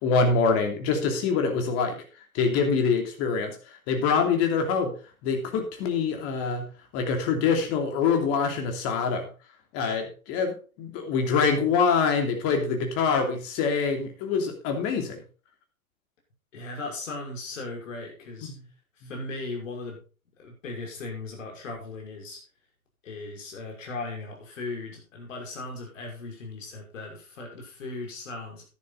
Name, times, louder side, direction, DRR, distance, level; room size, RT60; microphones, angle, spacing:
voice 1, 0.0-2.0 2.3-3.5 3.9-4.9 5.2-6.7 6.9-9.3 9.7-15.2 18.4-18.6, left 5 dB, 35° left, 4 dB, 3.0 m, -25 dB
voice 2, 16.5-18.5 19.0-20.0 20.4-22.4 23.0-28.6, left 3 dB, 60° left, 1 dB, 5.8 m, -37 dB
11.0 x 11.0 x 4.0 m, 0.35 s
figure-of-eight pair, 110°, 43 cm